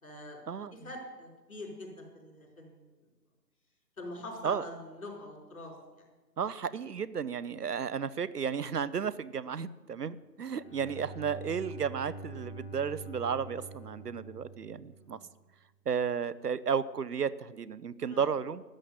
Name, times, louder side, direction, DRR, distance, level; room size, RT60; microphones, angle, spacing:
voice 1, 0.0-0.4 0.7-2.9 4.0-6.0 10.6-10.8 14.9-15.2 18.1-18.3, left 1 dB, 55° left, 1 dB, 4.6 m, -45 dB
voice 2, 6.4-15.2 15.9-18.6, right 7 dB, 70° right, 17 dB, 0.7 m, -33 dB
Bowed string instrument, 10.4-15.4, right 2 dB, 40° left, 1.0 m, -46 dB
13.0 x 7.6 x 10.0 m, 1.2 s
figure-of-eight pair, 170°, 50 cm